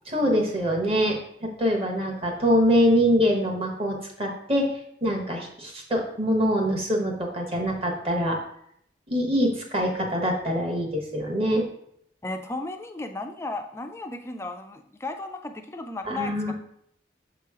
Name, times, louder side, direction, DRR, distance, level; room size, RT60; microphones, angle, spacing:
voice 1, 0.1-8.4 9.1-11.6 16.0-16.5, equal, 30° right, 1 dB, 1.0 m, -24 dB
voice 2, 12.2-16.5, left 2 dB, 15° left, 6 dB, 0.4 m, -34 dB
6.6 x 3.0 x 4.7 m, 0.72 s
head